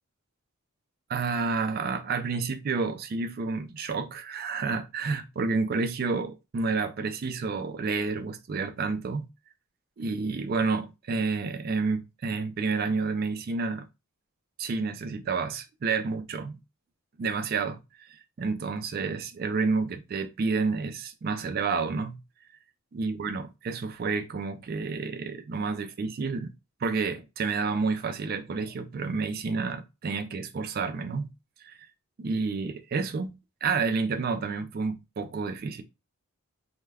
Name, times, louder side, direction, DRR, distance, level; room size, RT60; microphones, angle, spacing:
voice 1, 1.1-9.3 10.0-13.9 14.6-16.6 17.2-22.2 22.9-26.5 26.8-31.3 31.6-31.7 32.2-33.3 33.6-35.8, right 4 dB, 40° right, 0.3 m, -30 dB
2.3 x 2.1 x 3.3 m
head